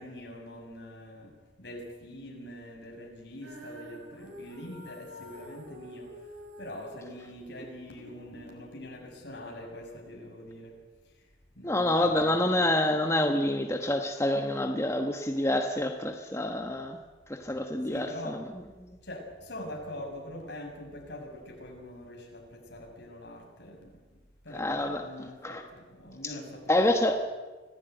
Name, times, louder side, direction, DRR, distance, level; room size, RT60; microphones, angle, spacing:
voice 1, 0.0-1.3 1.6-6.1 6.6-10.7 11.6-12.9 17.9-18.5 19.0-23.9 24.4-27.2, left 1 dB, 65° left, 1 dB, 6.9 m, -44 dB
Female singing, 3.4-9.6, equal, 85° right, 6.9 m, -48 dB
voice 2, 11.6-17.0 17.3-18.4 24.6-25.0 25.4-25.6 26.7-27.2, left 1 dB, 15° left, 4 dB, 1.2 m, -27 dB
25.5 x 16.0 x 9.3 m, 1.3 s
head